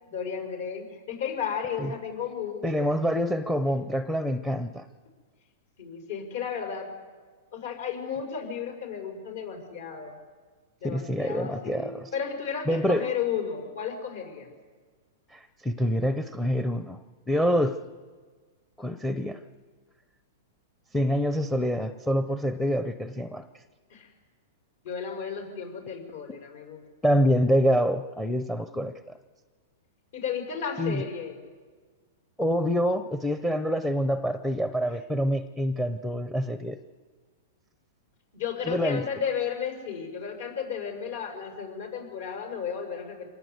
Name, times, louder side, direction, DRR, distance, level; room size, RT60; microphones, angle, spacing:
voice 1, 0.1-2.9 5.8-6.9 7.5-10.2 10.8-14.5 23.9-24.1 24.8-26.8 30.1-31.4 38.3-43.3, left 7 dB, 65° left, 4 dB, 5.7 m, -33 dB
voice 2, 2.6-4.9 10.8-12.1 12.7-13.1 15.3-17.0 17.3-17.8 18.8-19.4 20.9-23.5 27.0-28.9 30.8-31.0 32.4-36.8 38.7-39.0, equal, 5° left, 11 dB, 0.7 m, -26 dB
26.0 x 18.5 x 8.1 m, 1.5 s
hypercardioid pair, 150°, 0 cm